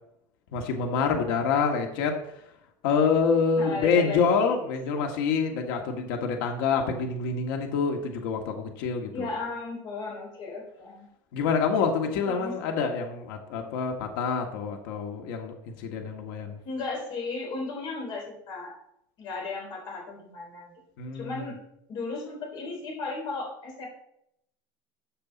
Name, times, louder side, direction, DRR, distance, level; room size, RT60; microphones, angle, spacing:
voice 1, 0.5-2.2 2.8-9.3 11.3-16.6 21.0-21.4, left 5 dB, 75° left, 3 dB, 1.9 m, -26 dB
voice 2, 3.6-4.2 4.6-5.0 9.1-11.1 12.1-12.7 16.6-18.7 19.2-20.7 21.1-21.6 21.9-23.9, left 3 dB, 40° left, -1 dB, 4.4 m, -35 dB
13.5 x 7.5 x 4.1 m, 0.76 s
cardioid pair, 165°, 12 cm